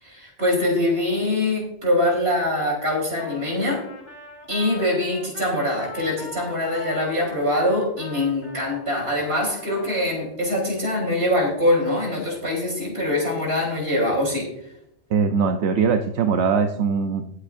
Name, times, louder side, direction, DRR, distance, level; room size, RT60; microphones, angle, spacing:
voice 1, 0.0-3.8 4.5-14.5, left 1 dB, 65° right, -1 dB, 4.2 m, -23 dB
Trumpet, 3.2-10.3, left 3 dB, 40° left, 3.1 m, -41 dB
voice 2, 15.1-17.3, right 6 dB, 90° right, 5 dB, 1.0 m, -21 dB
19.5 x 8.2 x 2.6 m, 0.77 s
omnidirectional pair, 1.1 m